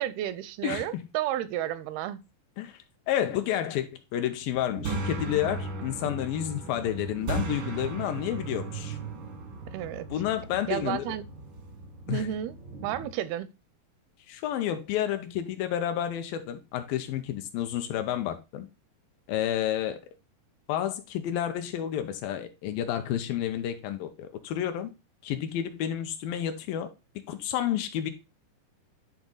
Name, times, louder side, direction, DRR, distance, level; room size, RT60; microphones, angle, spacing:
voice 1, 0.0-2.2 9.7-10.1 10.7-11.2 12.1-12.6 12.8-13.5, right 12 dB, 85° right, 2.5 m, -32 dB
voice 2, 0.6-1.1 2.6-2.8 3.1-9.0 10.1-11.1 12.1-12.3 14.3-18.7 19.3-20.0 20.7-24.9 25.2-26.9 27.3-28.1, left 11 dB, 80° left, 2.3 m, -30 dB
sound 1, 4.4-13.1, right 3 dB, 70° right, 1.1 m, -37 dB
10.5 x 3.6 x 3.9 m
omnidirectional pair, 4.4 m